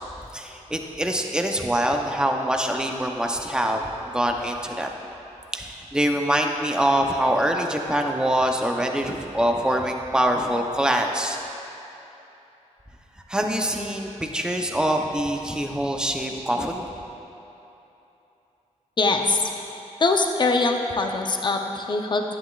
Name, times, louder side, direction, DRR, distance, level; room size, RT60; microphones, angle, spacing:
voice 1, 0.3-4.9 5.5-11.4 13.3-17.0, right 1 dB, 5° right, 2 dB, 0.7 m, -24 dB
voice 2, 19.0-19.4 20.0-22.4, left 3 dB, 35° left, 4 dB, 0.7 m, -22 dB
11.5 x 9.4 x 2.4 m, 3.0 s
wide cardioid pair, 100°, 13 cm